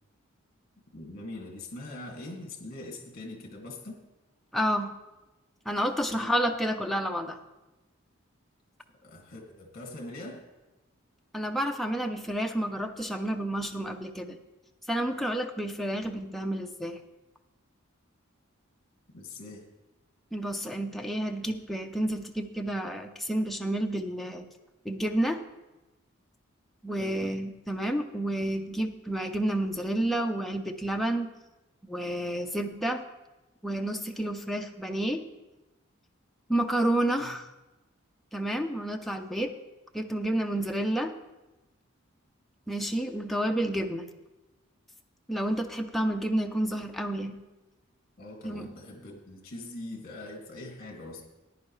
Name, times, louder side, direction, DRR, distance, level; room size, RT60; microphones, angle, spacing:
voice 1, 0.9-4.0 6.1-6.3 9.0-10.4 19.1-19.7 27.0-27.4 37.2-37.3 48.2-51.3, left 2 dB, 45° left, 1 dB, 2.3 m, -42 dB
voice 2, 4.5-4.9 5.7-7.4 11.3-14.4 14.9-17.0 20.3-24.4 24.8-25.4 26.8-31.3 31.9-33.0 33.6-35.2 36.5-37.4 38.3-39.5 39.9-41.1 42.7-44.1 45.3-47.4 48.4-48.7, right 1 dB, ahead, 3 dB, 0.5 m, -30 dB
14.5 x 10.5 x 3.2 m, 1.1 s
head